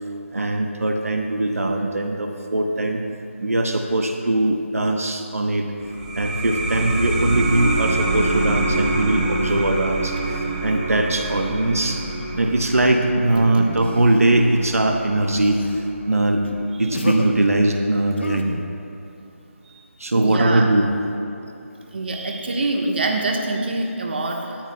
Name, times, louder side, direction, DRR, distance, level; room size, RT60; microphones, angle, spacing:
voice 1, 0.3-3.0 3.4-5.7 6.2-12.0 12.4-16.4 16.8-18.6 20.0-20.9, right 1 dB, 90° right, 3 dB, 1.1 m, -21 dB
sound 1, 5.8-17.0, right 2 dB, 30° right, 1.1 m, -26 dB
sound 2, 13.8-14.5 15.4-15.8 16.4-16.6 16.9-17.3 18.2-18.4, left 3 dB, 50° left, 1.0 m, -31 dB
voice 2, 20.1-20.6 21.9-24.6, right 2 dB, 50° right, 1 dB, 1.4 m, -25 dB
18.5 x 13.5 x 2.3 m, 2.7 s
figure-of-eight pair, 165°, 8 cm